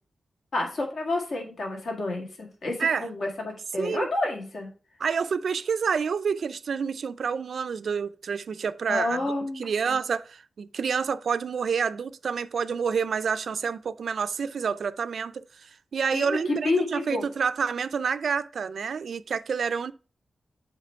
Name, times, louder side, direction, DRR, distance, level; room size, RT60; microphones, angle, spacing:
voice 1, 0.5-4.7 8.9-10.0 16.1-17.3, left 2 dB, 65° left, 1.7 m, -29 dB
voice 2, 3.8-4.1 5.0-19.9, right 6 dB, 70° right, 0.3 m, -28 dB
7.5 x 3.0 x 4.4 m
wide cardioid pair, 135°, 0 cm